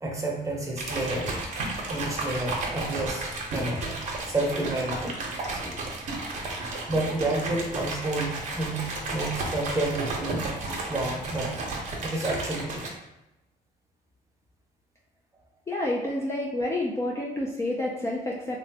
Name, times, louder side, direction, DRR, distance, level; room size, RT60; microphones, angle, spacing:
voice 1, 0.0-1.3 1.9-4.0 4.3-5.1 5.5-5.7 6.9-10.5 10.9-11.6 12.0-12.9, right 2 dB, 20° right, -2 dB, 0.7 m, -30 dB
sound 1, 0.8-12.9, right 2 dB, 45° right, 0.7 m, -33 dB
voice 2, 15.7-18.6, left 1 dB, 15° left, -3 dB, 0.3 m, -29 dB
3.0 x 2.2 x 2.7 m, 0.92 s
cardioid pair, 110°, 17 cm